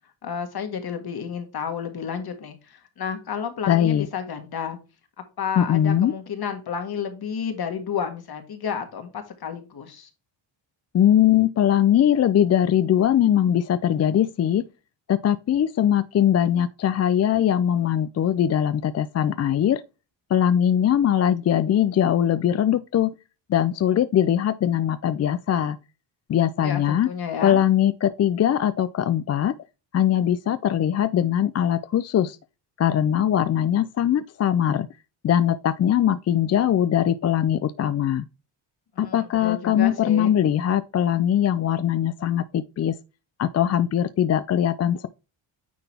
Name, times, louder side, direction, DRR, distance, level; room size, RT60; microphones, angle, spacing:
voice 1, 0.2-4.8 5.4-10.1 26.6-27.6 39.0-40.4, left 7 dB, 55° left, 1.9 m, -31 dB
voice 2, 3.7-4.1 5.6-6.1 10.9-14.7 15.1-19.8 20.3-23.1 23.5-25.8 26.3-27.1 27.4-29.5 29.9-32.4 32.8-34.9 35.2-38.3 39.0-43.0 43.4-45.1, left 10 dB, 35° left, 0.4 m, -21 dB
9.4 x 3.9 x 3.5 m
cardioid pair, 90°, 46 cm